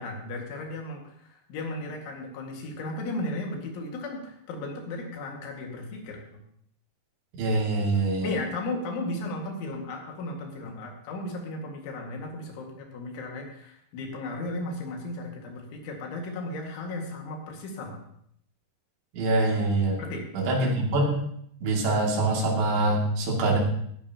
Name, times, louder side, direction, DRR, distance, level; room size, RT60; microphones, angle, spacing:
voice 1, 0.0-6.4 8.2-18.0 20.0-20.2, left 2 dB, 80° left, 1 dB, 4.5 m, -35 dB
voice 2, 7.4-8.3 19.1-20.0 20.3-21.2 21.6-23.6, right 2 dB, 70° right, -2 dB, 4.8 m, -24 dB
17.0 x 12.0 x 2.9 m, 0.69 s
omnidirectional pair, 5.3 m